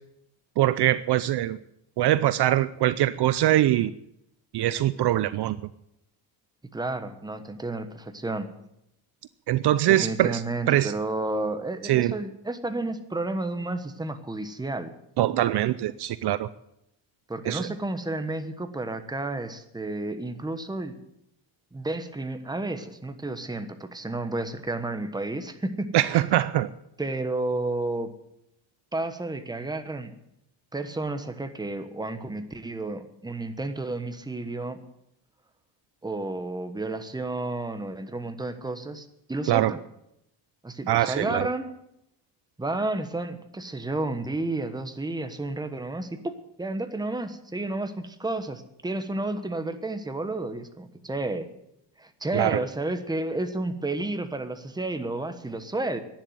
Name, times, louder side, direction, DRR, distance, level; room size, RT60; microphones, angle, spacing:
voice 1, 0.6-1.6 2.0-3.9 4.5-5.6 9.5-10.4 10.7-10.9 11.8-12.1 15.2-16.5 17.5-17.7 25.9-26.7 39.5-39.7 40.9-41.5 52.3-52.6, right 13 dB, 55° right, 15 dB, 0.6 m, -23 dB
voice 2, 6.7-8.5 9.9-14.9 17.3-20.9 21.7-25.9 27.0-28.1 28.9-30.1 30.7-34.8 36.0-39.8 40.6-41.7 42.6-51.5 52.0-56.0, right 2 dB, 10° right, 9 dB, 1.2 m, -31 dB
11.5 x 10.0 x 9.2 m, 0.81 s
cardioid pair, 125°, 48 cm